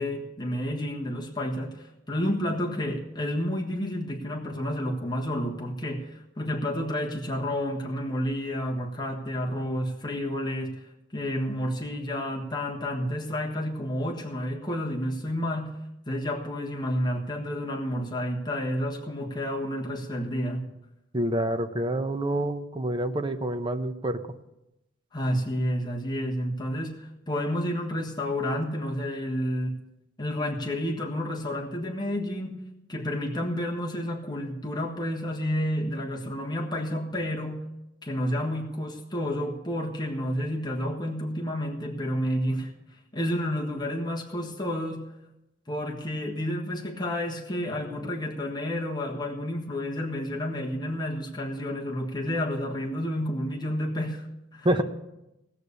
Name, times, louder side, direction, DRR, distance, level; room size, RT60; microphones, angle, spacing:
voice 1, 0.0-15.8 16.1-20.6 25.1-29.7 30.2-32.6 32.9-37.6 38.0-42.7 43.1-45.1 45.7-54.3 54.5-54.7, equal, 20° left, -1 dB, 1.4 m, -30 dB
voice 2, 21.1-24.2 54.6-54.8, right 1 dB, 25° right, 7 dB, 0.8 m, -27 dB
17.5 x 6.7 x 6.9 m, 0.91 s
head